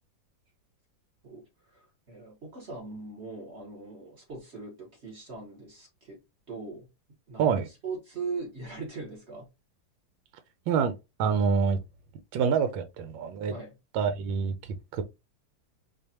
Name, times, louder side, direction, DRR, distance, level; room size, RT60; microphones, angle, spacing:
voice 1, 1.7-6.2 6.5-6.9 7.3-9.5 13.5-13.8, right 4 dB, 40° right, 1.4 m, -40 dB
voice 2, 11.2-11.8 12.3-13.5 13.9-14.5 14.9-15.0, right 6 dB, 80° right, 1.3 m, -26 dB
4.5 x 2.5 x 2.8 m
omnidirectional pair, 2.1 m